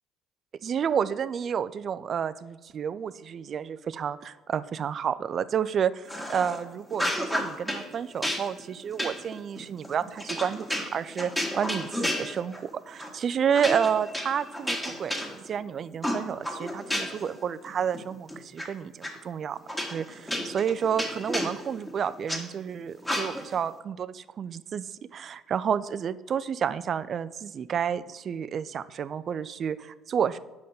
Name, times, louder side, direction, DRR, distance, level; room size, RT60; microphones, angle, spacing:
voice 1, 0.6-19.6 19.9-30.4, right 8 dB, 50° right, 16 dB, 0.3 m, -30 dB
sound 1, 6.1-6.6 6.9-7.8 8.2-12.7 13.0-13.2 13.5-15.6 16.0-17.3 17.7-18.6 19.0-19.1 19.7-22.4 23.0-23.6, left 1 dB, 10° left, 1.8 m, -32 dB
5.6 x 5.2 x 6.6 m, 1.2 s
hypercardioid pair, 55°, 0 cm